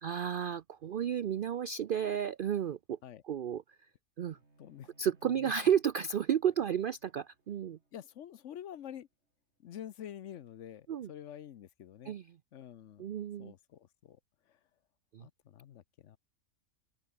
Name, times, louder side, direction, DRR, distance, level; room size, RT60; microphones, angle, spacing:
voice 1, 0.0-3.0 3.2-3.6 4.2-4.4 5.0-7.8 10.9-11.1 12.0-12.4 13.0-13.5 15.1-15.3, right 9 dB, 85° right, 0.4 m, -32 dB
Bowed string instrument, 4.2-9.6, right 2 dB, 45° right, 4.3 m, -69 dB
voice 2, 4.6-4.9 5.2-5.5 7.9-9.1 9.6-12.1 12.5-13.1 13.4-14.2 15.2-16.2, left 10 dB, 60° left, 1.0 m, -47 dB
open air
omnidirectional pair, 1.6 m